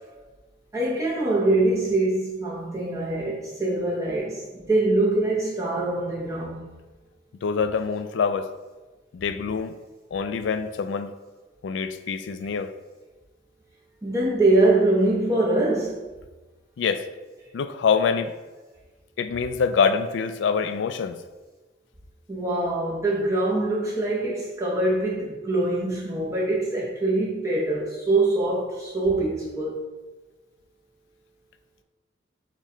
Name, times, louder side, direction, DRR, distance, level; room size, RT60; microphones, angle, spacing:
voice 1, 0.7-6.6 14.0-16.0 22.3-29.8, right 2 dB, 15° right, 0.6 m, -24 dB
voice 2, 7.4-8.5 9.1-9.7 10.1-11.1 11.6-12.7 16.8-17.1 17.5-18.3 19.2-21.2, left 6 dB, 65° left, 0.3 m, -25 dB
6.2 x 2.2 x 3.8 m
head